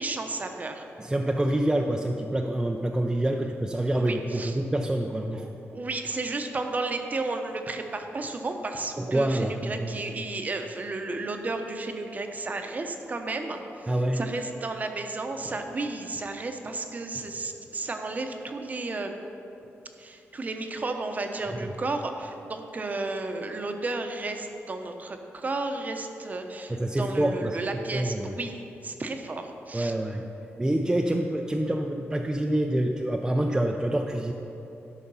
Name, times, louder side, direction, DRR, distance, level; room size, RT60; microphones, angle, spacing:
voice 1, 0.0-0.8 3.9-4.6 5.3-19.1 20.0-29.9, right 3 dB, 35° right, 5 dB, 0.8 m, -33 dB
voice 2, 1.0-5.4 9.0-10.0 13.9-14.2 21.6-21.7 26.7-27.6 27.9-28.3 29.7-30.2 30.6-34.3, right 1 dB, 15° right, 2 dB, 0.5 m, -26 dB
12.5 x 5.8 x 5.5 m, 2.9 s
wide cardioid pair, 120°, 5 cm